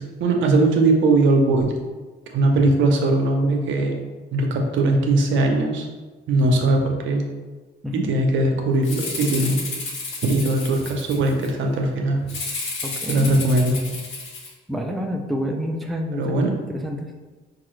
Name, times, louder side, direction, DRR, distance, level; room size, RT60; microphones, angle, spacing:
voice 1, 0.0-1.8 2.3-3.9 4.3-5.9 6.3-7.2 7.9-9.6 10.2-12.2 13.1-13.8 16.1-16.5, right 2 dB, 75° right, 2 dB, 0.6 m, -20 dB
Rattle (instrument), 8.8-11.5 12.3-14.5, left 3 dB, 75° left, 0.9 m, -31 dB
voice 2, 12.8-13.4 14.7-17.1, equal, ahead, 2 dB, 0.4 m, -28 dB
4.6 x 2.4 x 3.1 m, 1.3 s
cardioid pair, 90°, 20 cm